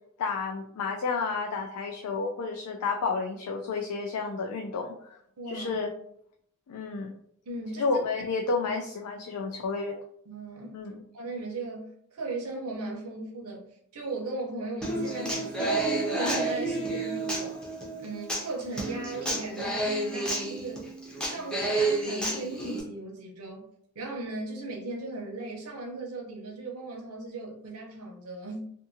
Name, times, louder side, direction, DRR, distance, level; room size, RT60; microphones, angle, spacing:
voice 1, 0.2-5.2 5.5-5.9 6.7-7.1 7.8-10.0 10.7-10.9, left 4 dB, 85° left, 2 dB, 0.4 m, -31 dB
voice 2, 5.4-5.8 7.4-7.9 10.3-10.8 11.1-13.6 13.9-17.6 18.0-20.9 21.2-23.7 23.9-28.7, right 2 dB, 80° right, 0 dB, 0.7 m, -37 dB
Human voice / Acoustic guitar, 14.8-22.8, right 2 dB, 5° left, 0.5 m, -30 dB
2.6 x 2.5 x 2.6 m, 0.68 s
head